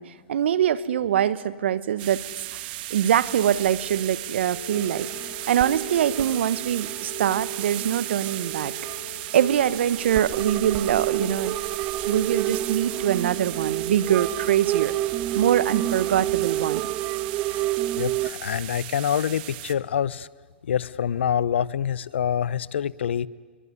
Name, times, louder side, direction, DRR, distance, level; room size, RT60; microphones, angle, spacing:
voice 1, 0.0-2.2 2.5-5.1 5.5-8.7 9.3-11.5 12.0-14.9 15.3-16.8, right 10 dB, 75° right, 17 dB, 1.2 m, -23 dB
sound 1, 2.0-19.7, right 16 dB, 50° right, 1.5 m, -36 dB
sound 2, 3.8-13.8, left 8 dB, 65° left, 2.5 m, -45 dB
sound 3, 4.7-18.3, right 14 dB, 35° right, 0.9 m, -30 dB
voice 2, 18.0-20.3 20.7-23.3, left 9 dB, 80° left, 21 dB, 0.8 m, -26 dB
23.5 x 23.0 x 9.7 m, 1.5 s
hypercardioid pair, 130°, 6 cm